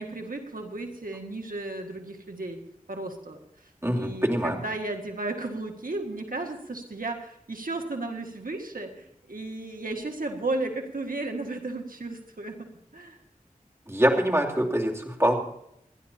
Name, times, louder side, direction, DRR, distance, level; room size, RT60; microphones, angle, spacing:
voice 1, 0.0-2.6 2.9-13.2, right 2 dB, 90° right, 3 dB, 1.8 m, -34 dB
voice 2, 3.8-4.6 13.9-15.3, equal, 20° right, -1 dB, 2.9 m, -24 dB
29.0 x 11.0 x 2.8 m, 0.77 s
wide cardioid pair, 40°, 14 cm